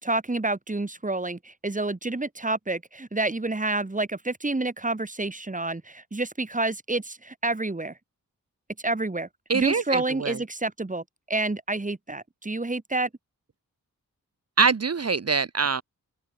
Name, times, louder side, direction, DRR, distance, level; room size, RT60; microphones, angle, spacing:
voice 1, 0.0-7.9 8.8-13.1, right 2 dB, 20° right, 4.7 m, -29 dB
voice 2, 9.5-10.4 14.6-15.8, right 5 dB, 45° right, 1.7 m, -24 dB
open air
wide cardioid pair, 135°, 34 cm